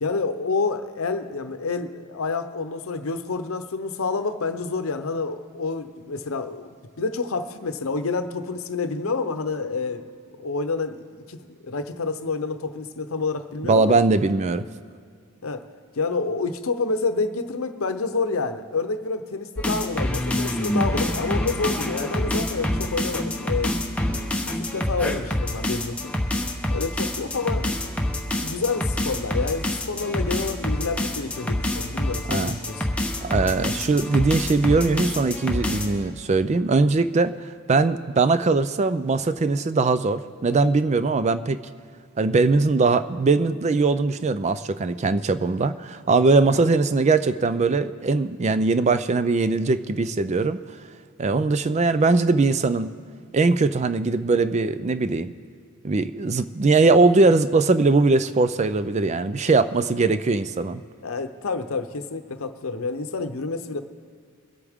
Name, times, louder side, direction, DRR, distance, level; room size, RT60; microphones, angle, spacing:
voice 1, 0.0-10.0 10.4-14.1 15.4-15.7 16.0-23.8 24.4-26.0 26.7-27.7 28.4-32.9 46.4-46.7 51.3-51.6 59.5-59.6 61.0-63.8, left 4 dB, 75° left, 9 dB, 0.8 m, -28 dB
voice 2, 13.6-14.7 32.3-32.6 33.2-41.6 42.2-50.6 51.2-52.9 53.3-55.3 55.8-60.8, right 3 dB, 30° right, 13 dB, 0.4 m, -21 dB
sound 1, 19.6-36.0, left 1 dB, 5° left, 0.9 m, -26 dB
23.5 x 8.3 x 3.6 m, 2.2 s
head